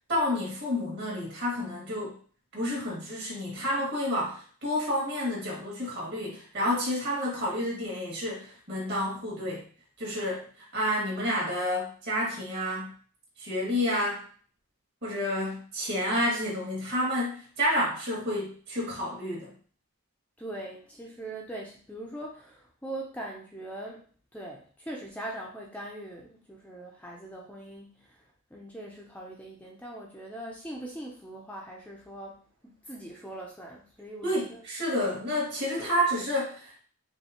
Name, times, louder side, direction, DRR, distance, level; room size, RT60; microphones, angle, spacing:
voice 1, 0.1-2.2 2.5-9.6 10.0-12.9 13.4-14.3 15.0-19.5 34.2-36.8, equal, 55° right, -4 dB, 2.0 m, -30 dB
voice 2, 20.4-24.1 24.3-28.2 28.5-34.6, right 1 dB, 5° left, -1 dB, 0.5 m, -41 dB
5.5 x 2.6 x 2.9 m, 0.43 s
head